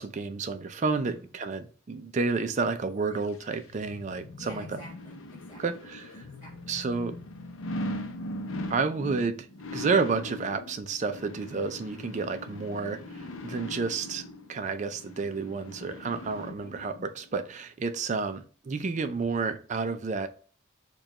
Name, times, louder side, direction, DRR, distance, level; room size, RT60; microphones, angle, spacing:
voice 1, 0.0-4.8 5.6-6.2 6.7-7.2 8.7-9.5 9.7-14.2 14.5-20.3, right 4 dB, 35° right, 9 dB, 0.3 m, -30 dB
voice 2, 0.9-1.3 4.4-5.6 6.2-6.8 16.5-16.7, right 2 dB, 15° left, -12 dB, 1.8 m, -51 dB
sound 1, 3.2-17.1 17.5-17.6, left 1 dB, 70° left, 0.5 m, -40 dB
4.8 x 2.3 x 2.8 m, 0.41 s
head